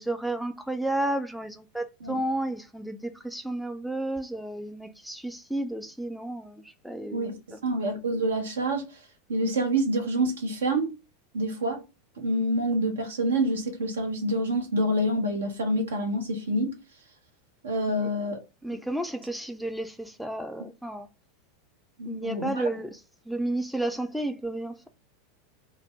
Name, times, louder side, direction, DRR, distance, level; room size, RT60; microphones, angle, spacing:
voice 1, 0.0-7.6 17.9-18.1 18.6-21.1 22.1-23.0 23.3-24.9, right 1 dB, ahead, 0.3 m, -32 dB
voice 2, 7.1-9.0 9.3-11.0 11.3-11.8 12.2-16.8 17.6-18.4 22.0-22.7, right 1 dB, 70° right, 0.8 m, -27 dB
2.7 x 2.0 x 3.4 m
figure-of-eight pair, 85°, 0 cm